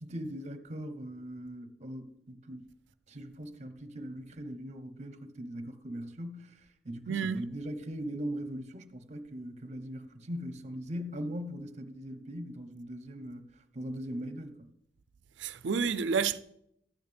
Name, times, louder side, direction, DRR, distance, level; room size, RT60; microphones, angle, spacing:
voice 1, 0.0-2.7 3.1-14.7, equal, 40° right, 0.9 m, -40 dB
voice 2, 7.1-7.5 15.4-16.4, right 5 dB, 70° right, 0.5 m, -30 dB
13.0 x 8.8 x 3.4 m
head